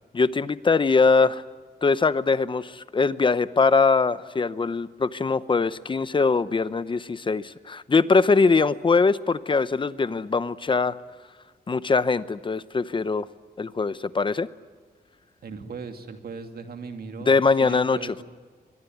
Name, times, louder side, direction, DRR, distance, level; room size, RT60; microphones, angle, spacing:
voice 1, 0.1-1.4 1.8-10.9 11.7-13.3 13.6-14.5 17.3-18.0, left 4 dB, 30° left, 15 dB, 0.8 m, -22 dB
voice 2, 15.4-18.2, right 5 dB, 65° right, 6 dB, 2.4 m, -38 dB
25.0 x 22.0 x 9.3 m, 1.5 s
wide cardioid pair, 155°, 17 cm